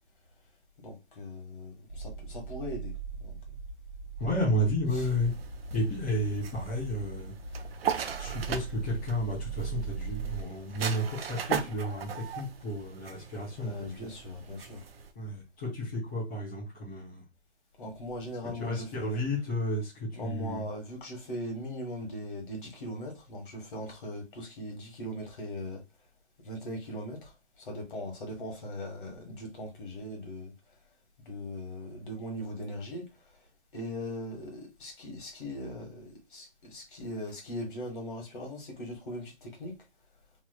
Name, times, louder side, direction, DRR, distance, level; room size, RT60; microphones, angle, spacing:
voice 1, 0.8-2.9 3.2-3.4 4.9-5.1 13.6-14.8 17.8-19.2 20.1-25.8 26.4-27.3 27.6-30.5 31.3-33.0 33.7-39.7, left 1 dB, 50° left, 1.3 m, -39 dB
sound 1, 1.9-10.4, right 5 dB, 40° right, 1.3 m, -40 dB
voice 2, 4.2-5.3 5.7-7.3 8.2-14.1 15.1-17.2 18.6-20.6, equal, 10° left, 0.7 m, -32 dB
sound 2, 5.0-15.1, right 7 dB, 60° right, 0.5 m, -38 dB
3.0 x 2.9 x 2.2 m
hypercardioid pair, 170°, 34 cm